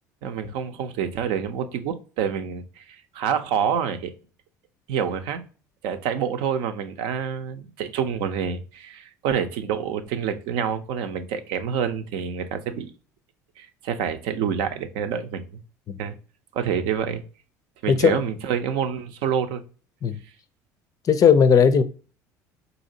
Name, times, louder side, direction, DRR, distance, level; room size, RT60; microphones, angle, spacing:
voice 1, 0.2-2.8 3.1-4.1 4.9-5.4 5.8-12.9 13.6-15.6 16.0-16.1 16.5-17.2 17.8-19.6, right 7 dB, 70° right, 0.5 m, -27 dB
voice 2, 17.9-18.2 20.0-20.2 21.0-21.8, left 7 dB, 40° left, 0.4 m, -17 dB
3.9 x 2.7 x 2.7 m
hypercardioid pair, 70°, 9 cm